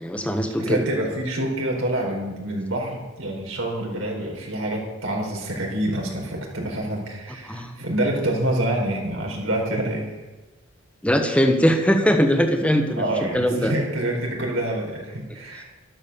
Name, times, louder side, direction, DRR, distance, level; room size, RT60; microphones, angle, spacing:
voice 1, 0.0-0.8 7.5-7.7 11.0-13.0 13.3-13.7 15.3-15.6, equal, 5° left, 5 dB, 1.2 m, -21 dB
voice 2, 0.6-10.1 13.0-15.6, right 1 dB, 85° right, 0 dB, 4.6 m, -27 dB
12.5 x 12.0 x 7.0 m, 1.1 s
head